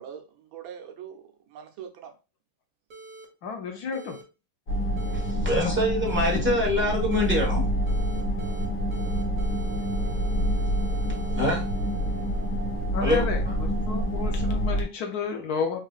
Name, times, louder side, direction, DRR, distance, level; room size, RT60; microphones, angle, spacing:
voice 1, 0.0-2.1 4.9-5.2, right 8 dB, 80° right, 1.4 m, -43 dB
sound 1, 2.9-3.3 3.9-4.2 5.0-5.3 6.1-6.4 7.1-7.5 7.9-8.7 8.9-12.6, right 3 dB, 50° right, 1.0 m, -46 dB
voice 2, 3.4-4.2 12.9-13.4 13.8-15.9, left 5 dB, 70° left, 0.9 m, -31 dB
sound 2, 4.7-14.8, equal, 50° left, 1.5 m, -27 dB
voice 3, 5.1-7.7 11.3-11.6 13.0-13.5, left 1 dB, 10° right, 0.6 m, -25 dB
3.9 x 2.5 x 2.3 m
omnidirectional pair, 2.2 m